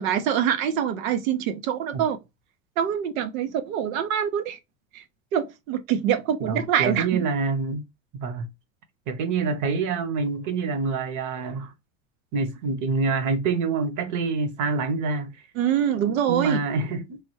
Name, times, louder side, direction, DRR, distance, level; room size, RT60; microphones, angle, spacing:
voice 1, 0.0-2.2 2.8-4.6 4.9-5.0 5.3-7.1 15.6-16.6, right 9 dB, 90° right, 0.7 m, -25 dB
voice 2, 6.4-7.8 8.1-8.5 9.1-11.7 12.3-15.4 16.0-17.2, right 4 dB, 45° right, 0.9 m, -26 dB
3.2 x 2.2 x 3.0 m
supercardioid pair, 105°, 40 cm